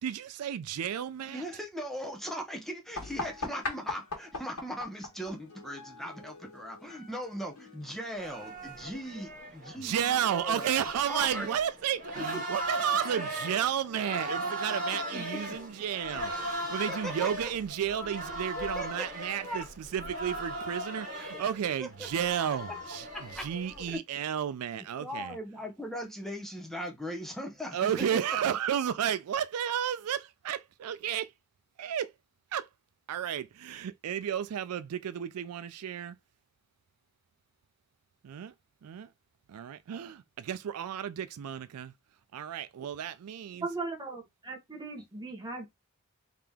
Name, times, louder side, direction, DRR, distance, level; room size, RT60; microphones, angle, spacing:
voice 1, 0.0-1.4 9.8-23.1 23.3-25.4 27.7-31.3 31.8-32.1 32.5-32.7 33.1-36.2 38.2-38.5 38.8-39.1 39.5-41.9 42.3-43.7, right 9 dB, 75° right, 0.4 m, -32 dB
voice 2, 1.3-10.7 11.1-11.5 12.2-12.3 15.1-15.6 16.6-17.5 18.6-19.1 19.4-19.7 21.8-21.9 22.2-22.3 23.1-23.5 23.9-24.0 25.0-28.4, equal, ahead, 0.8 m, -39 dB
sound 1, 2.9-8.5, left 3 dB, 75° left, 1.5 m, -41 dB
sound 2, 8.2-23.9, right 1 dB, 35° right, 1.8 m, -38 dB
voice 3, 43.6-45.7, right 3 dB, 20° right, 1.2 m, -38 dB
3.6 x 2.8 x 3.5 m
head